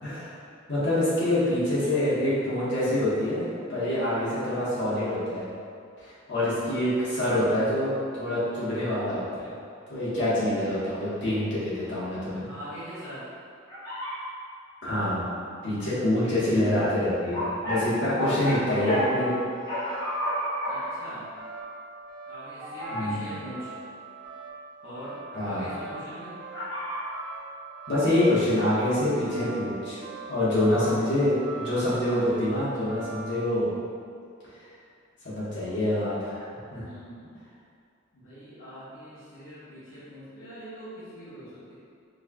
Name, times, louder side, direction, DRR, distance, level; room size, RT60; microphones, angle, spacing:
voice 1, 0.0-0.3 0.7-5.5 6.0-9.5 9.9-12.5 14.8-15.3 15.6-19.3 19.8-20.0 22.9-23.3 25.3-25.7 27.9-30.0 30.3-33.7 35.2-36.5 36.7-36.8, left 1 dB, 60° left, -11 dB, 1.3 m, -26 dB
voice 2, 12.4-13.3 15.8-15.9 16.2-16.3 18.2-18.4 20.7-21.2 22.3-23.7 24.8-26.3 35.5-35.9 36.8-37.4 38.1-41.7, equal, 85° left, -12 dB, 1.0 m, -43 dB
sound 1, 13.7-14.2 17.3-19.1 19.7-21.0 22.6-23.1 26.5-27.0, equal, 20° left, 1.0 m, -31 dB
sound 2, 18.0-33.4, right 3 dB, 50° right, 0.8 m, -42 dB
4.5 x 2.9 x 2.3 m, 2.4 s
head